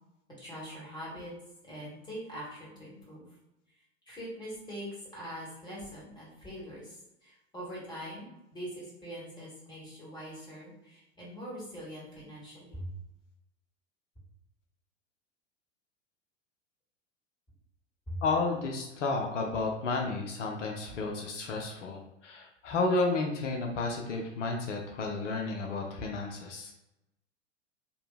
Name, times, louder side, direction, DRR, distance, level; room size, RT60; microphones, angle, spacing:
voice 1, 0.4-1.3 1.6-3.3 4.1-12.9 18.1-18.2, equal, 10° left, -7 dB, 1.5 m, -43 dB
voice 2, 18.2-26.7, left 3 dB, 80° left, 1 dB, 0.6 m, -32 dB
2.7 x 2.6 x 2.4 m, 0.91 s
hypercardioid pair, 95°, 36 cm